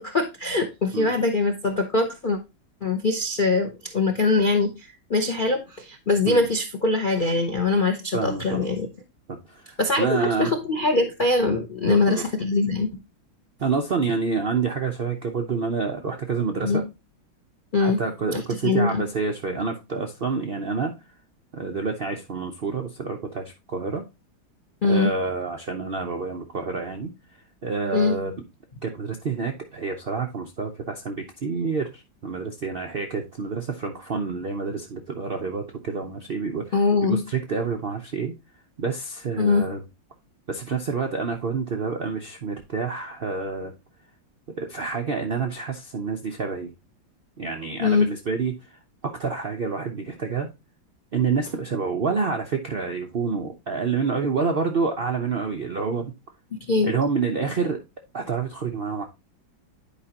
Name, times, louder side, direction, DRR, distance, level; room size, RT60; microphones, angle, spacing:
voice 1, 0.0-2.4 2.8-8.9 9.8-12.9 16.6-16.8 17.7-18.0 18.3-19.0 24.8-25.1 27.9-28.2 36.7-37.2 39.4-39.7 47.8-48.1 56.7-56.9, left 3 dB, 65° left, 0.5 m, -22 dB
voice 2, 8.1-8.7 9.3-10.5 11.9-12.2 13.6-16.9 17.8-20.9 21.5-24.0 24.8-27.1 27.6-28.3 28.8-36.8 37.0-38.3 38.8-39.8 40.5-43.7 44.6-46.7 47.4-50.5 51.1-56.1 56.8-57.8 58.1-59.0, right 5 dB, 90° right, 0.5 m, -28 dB
10.0 x 4.9 x 2.8 m
omnidirectional pair, 2.1 m